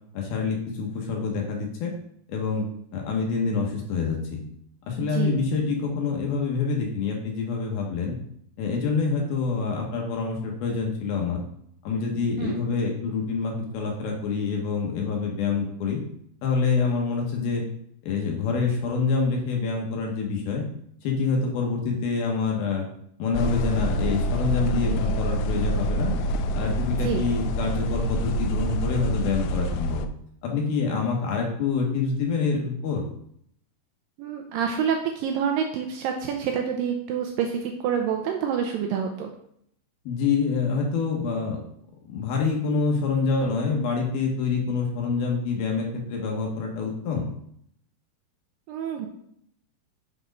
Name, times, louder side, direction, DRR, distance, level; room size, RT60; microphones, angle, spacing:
voice 1, 0.1-1.9 2.3-4.4 4.9-8.1 8.6-11.4 11.8-16.0 16.4-17.6 18.0-20.6 21.0-22.9 23.2-26.1 26.5-30.0 30.4-33.0 40.1-41.6 42.1-47.3, left 4 dB, 70° left, 0 dB, 2.7 m, -26 dB
sound 1, 23.3-30.1, equal, 90° left, 2.7 m, -26 dB
voice 2, 34.2-39.3 48.7-49.1, right 7 dB, 85° right, 3 dB, 2.0 m, -27 dB
6.8 x 4.3 x 5.1 m, 0.70 s
omnidirectional pair, 4.7 m